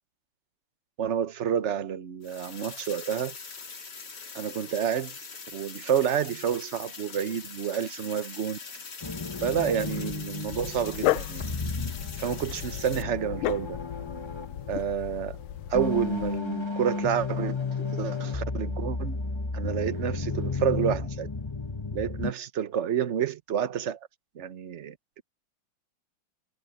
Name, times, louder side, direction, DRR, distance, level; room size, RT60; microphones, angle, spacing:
voice 1, 1.0-3.3 4.3-5.1 5.5-8.6 9.4-11.4 12.2-13.8 14.7-15.4 15.7-17.6 17.8-19.2 19.5-21.3 21.9-24.0 24.3-25.2, right 8 dB, 45° right, 1.0 m, -29 dB
sound 1, 2.2-13.0, left 5 dB, 55° left, 3.1 m, -42 dB
sound 2, 9.0-22.3, left 4 dB, 20° left, 0.8 m, -33 dB
Dog, 10.5-16.4, left 14 dB, 85° left, 1.5 m, -34 dB
omnidirectional pair, 2.2 m